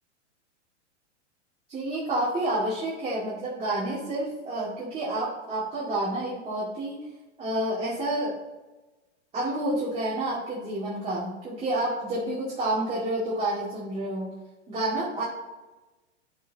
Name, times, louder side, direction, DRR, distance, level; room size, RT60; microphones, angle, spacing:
voice 1, 1.7-7.0 7.4-8.4 9.3-14.3 14.7-15.2, right 1 dB, 15° right, -8 dB, 2.3 m, -29 dB
12.5 x 4.8 x 4.1 m, 1.1 s
hypercardioid pair, 145°, 36 cm